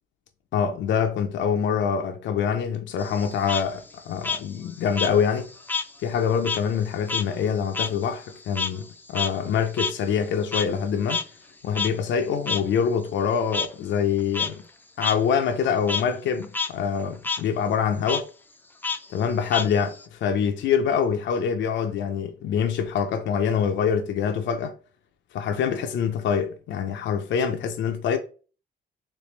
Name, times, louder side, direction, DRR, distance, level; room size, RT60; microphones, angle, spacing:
voice 1, 0.5-5.5 6.0-11.2 11.6-14.6 15.0-18.3 19.1-24.7 25.3-28.2, left 7 dB, 70° left, 0.5 m, -25 dB
Frog, 3.0-5.9 6.2-10.8 11.1-11.2 11.7-11.9 12.5-12.6 13.5-13.7 14.2-14.5 15.0-15.1 15.5-16.0 16.4-16.7 17.0-17.4 18.0-18.2 18.8-20.0, left 5 dB, 10° left, 0.4 m, -29 dB
3.2 x 3.2 x 3.2 m
cardioid pair, 90°, 20 cm